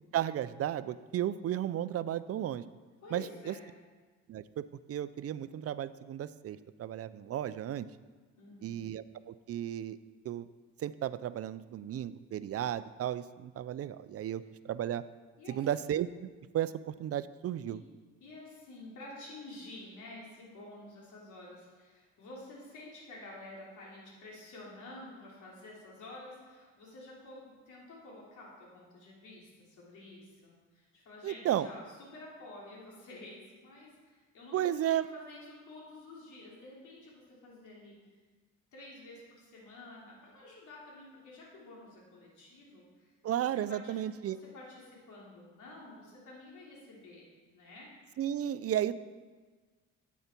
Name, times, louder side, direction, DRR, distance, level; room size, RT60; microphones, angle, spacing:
voice 1, 0.1-2.6 3.1-3.5 4.3-7.9 8.6-10.0 10.2-10.5 10.8-15.0 15.5-16.3 16.5-17.8 31.2-31.7 34.5-35.1 43.2-44.4 48.2-48.9, right 11 dB, 50° right, 15 dB, 0.5 m, -34 dB
voice 2, 3.0-3.7 8.3-8.8 15.4-15.7 17.6-17.8 18.2-38.0 38.7-44.0 44.2-47.3 47.5-47.9, left 2 dB, 75° left, -4 dB, 3.2 m, -50 dB
10.0 x 8.4 x 4.5 m, 1.4 s
cardioid pair, 90°, 30 cm